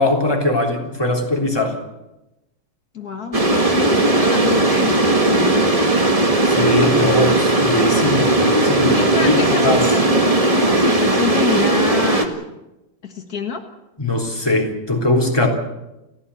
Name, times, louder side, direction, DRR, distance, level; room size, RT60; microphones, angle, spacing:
voice 1, 0.0-1.8 6.5-9.8 14.0-15.5, left 2 dB, 5° left, 0 dB, 3.2 m, -20 dB
voice 2, 2.9-5.7 8.9-10.2 10.5-12.4 13.0-13.7, left 6 dB, 80° left, 5 dB, 0.8 m, -27 dB
sound 1, 3.3-12.3, right 2 dB, 45° right, 0.4 m, -17 dB
30.0 x 14.0 x 8.4 m, 0.97 s
omnidirectional pair, 4.1 m